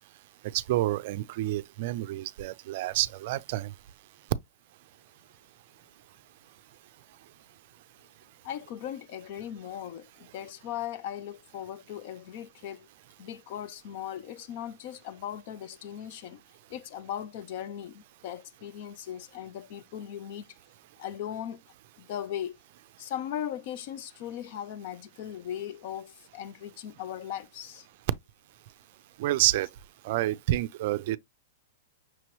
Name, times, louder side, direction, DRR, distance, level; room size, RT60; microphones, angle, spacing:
voice 1, 0.5-3.7 29.2-29.7 30.0-31.2, right 15 dB, 45° right, 0.4 m, -28 dB
voice 2, 8.4-12.9 13.2-16.4 16.7-20.5 21.0-21.6 22.0-22.6 23.0-27.9, left 10 dB, 45° left, 0.5 m, -38 dB
6.0 x 3.0 x 3.0 m
supercardioid pair, 165°, 0 cm